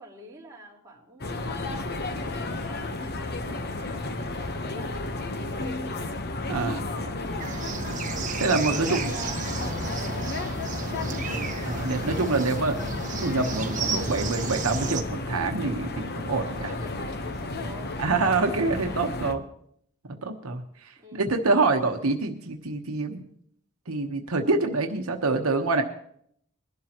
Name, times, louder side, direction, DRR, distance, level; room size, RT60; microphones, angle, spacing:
voice 1, 0.0-6.2 6.9-7.7 8.6-9.6 10.2-12.2 16.6-17.9 21.0-21.3, right 1 dB, 15° right, -5 dB, 4.2 m, -46 dB
sound 1, 1.2-19.3, left 2 dB, 50° left, 1.0 m, -33 dB
voice 2, 6.5-6.8 8.4-9.1 11.6-12.8 13.2-16.7 18.0-19.4 20.2-23.2 23.9-25.8, right 3 dB, 80° right, 4 dB, 1.1 m, -26 dB
sound 2, 7.4-15.0, right 4 dB, 35° right, 1.5 m, -33 dB
21.5 x 12.0 x 3.0 m, 0.68 s
head